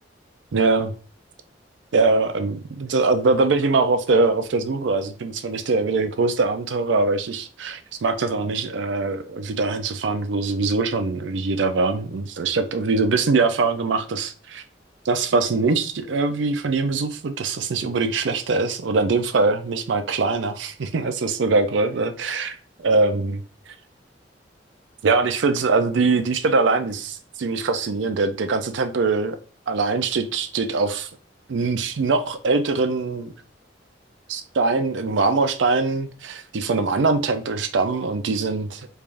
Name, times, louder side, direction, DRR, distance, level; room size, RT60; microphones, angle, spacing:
voice 1, 0.5-0.9 1.9-14.6 15.0-23.7 25.0-29.4 29.7-31.1 31.5-33.3 34.3-38.9, right 3 dB, 75° right, 0.5 m, -22 dB
3.4 x 3.3 x 2.5 m
head